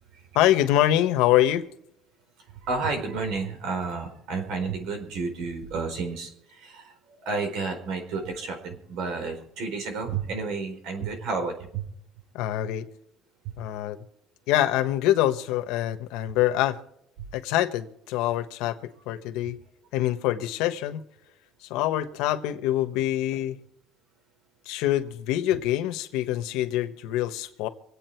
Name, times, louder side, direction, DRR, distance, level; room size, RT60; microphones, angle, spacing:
voice 1, 0.3-1.7 12.3-12.9 13.6-14.0 14.5-16.8 17.3-18.8 19.1-19.6 19.9-21.0 21.6-23.6 24.6-27.7, left 13 dB, 90° left, 9 dB, 1.2 m, -25 dB
voice 2, 2.6-11.9, right 4 dB, 75° right, 5 dB, 4.3 m, -31 dB
26.0 x 8.7 x 4.6 m, 0.74 s
cardioid pair, 150°, 0 cm